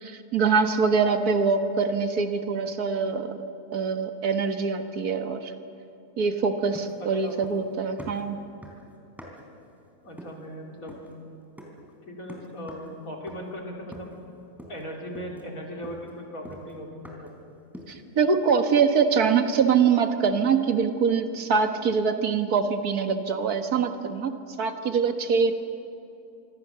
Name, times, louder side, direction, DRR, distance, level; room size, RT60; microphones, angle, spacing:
voice 1, 0.0-3.3 3.7-5.5 6.2-8.4 17.9-25.5, right 5 dB, 80° right, 7 dB, 1.9 m, -24 dB
sound 1, 6.7-7.7 8.0-9.6 10.2-10.5 10.9-11.2 11.6-11.9 12.3-13.0 13.3-13.6 13.9-14.3 14.6-14.9 15.1-17.4 17.7-18.1, equal, ahead, 3.8 m, -45 dB
voice 2, 10.0-11.0 12.1-14.1 14.7-17.3, equal, 65° left, -1 dB, 4.2 m, -38 dB
25.5 x 25.0 x 6.8 m, 2.7 s
omnidirectional pair, 1.6 m